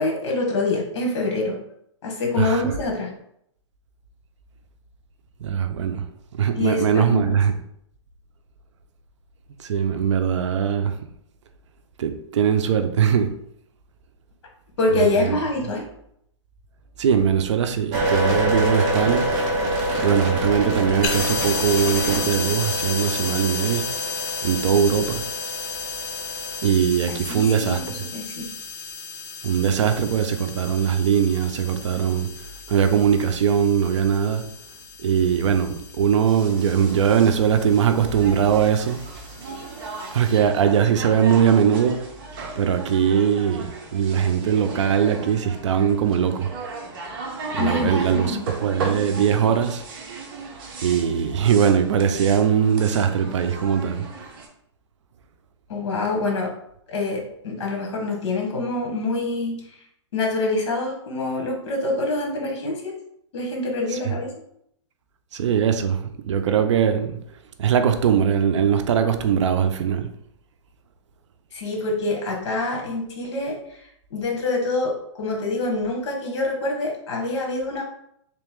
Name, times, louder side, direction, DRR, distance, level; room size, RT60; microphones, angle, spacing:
voice 1, 0.0-1.6 2.0-3.1 6.6-7.4 14.8-15.9 27.3-28.5 47.6-48.5 55.7-56.5 56.9-59.8 60.1-62.9 63.3-64.3 71.5-73.8 74.1-77.8, left 2 dB, 60° left, 1.5 m, -25 dB
voice 2, 5.4-6.0 6.3-7.5 9.6-11.0 12.0-13.3 14.9-15.4 17.0-19.3 20.0-23.9 24.4-25.2 26.6-27.8 29.4-32.3 32.7-34.5 35.0-39.0 40.1-42.0 42.6-46.5 47.5-49.8 50.8-54.1 64.1-64.2 65.3-67.2 67.6-70.1, right 8 dB, 70° right, 0.5 m, -21 dB
sound 1, 17.9-26.7, right 1 dB, 25° right, 0.9 m, -26 dB
sound 2, 21.0-40.4, left 5 dB, 30° left, 0.6 m, -33 dB
sound 3, 36.3-54.5, right 3 dB, 45° right, 0.9 m, -36 dB
3.3 x 2.9 x 3.6 m
hypercardioid pair, 160°, 16 cm